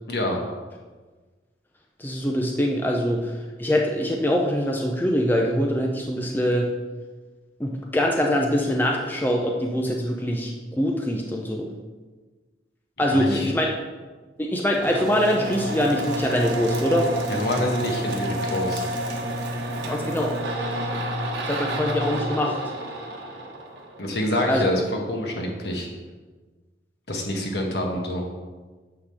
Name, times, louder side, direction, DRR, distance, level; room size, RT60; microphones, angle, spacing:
voice 1, 2.0-3.3 3.6-6.7 7.6-11.7 13.0-13.7 14.4-17.0 19.9-20.3 21.5-22.6 24.4-24.6, equal, 10° left, 0 dB, 0.6 m, -23 dB
voice 2, 13.1-13.5 17.3-18.8 24.0-24.8 25.1-25.9 27.1-28.2, left 1 dB, 65° left, 0 dB, 1.5 m, -26 dB
sound 1, 14.7-24.3, right 1 dB, 85° right, 1.4 m, -29 dB
8.8 x 3.9 x 6.5 m, 1.3 s
head